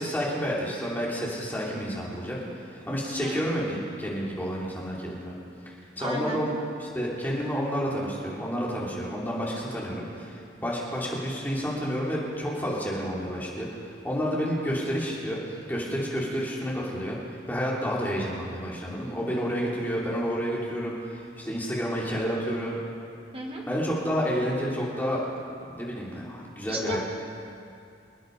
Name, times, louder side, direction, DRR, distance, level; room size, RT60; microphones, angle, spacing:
voice 1, 0.0-5.3 6.0-6.5 6.8-22.8 23.7-25.3 25.6-27.0, equal, 10° left, -5 dB, 2.9 m, -30 dB
voice 2, 3.0-3.4 6.0-6.4 23.3-23.6 26.7-27.0, right 1 dB, 30° right, -1 dB, 2.0 m, -33 dB
26.0 x 9.3 x 5.2 m, 2.5 s
head